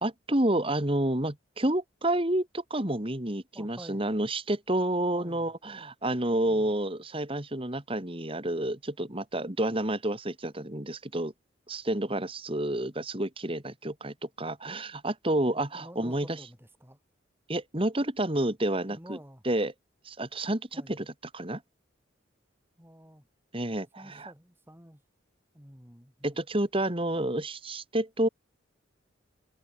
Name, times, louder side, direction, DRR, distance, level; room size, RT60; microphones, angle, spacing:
voice 1, 0.0-11.3 11.7-16.4 17.5-19.2 19.4-19.7 20.0-21.6 23.5-24.3 26.2-28.3, right 1 dB, 30° right, 2.4 m, -29 dB
voice 2, 3.5-4.1 5.1-5.5 6.4-6.7 15.4-17.0 18.9-19.4 20.7-21.0 22.8-23.2 24.0-25.0 25.5-26.4 27.1-27.4, equal, 10° right, 6.4 m, -50 dB
head